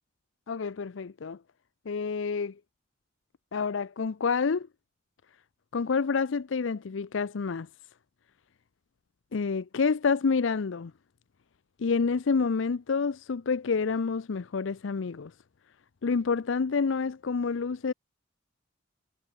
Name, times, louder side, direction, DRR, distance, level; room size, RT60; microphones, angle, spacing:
voice 1, 0.5-1.4 1.9-2.5 3.5-4.7 5.7-7.7 9.3-10.9 11.8-15.3 16.0-17.9, left 5 dB, 75° left, 0.5 m, -28 dB
head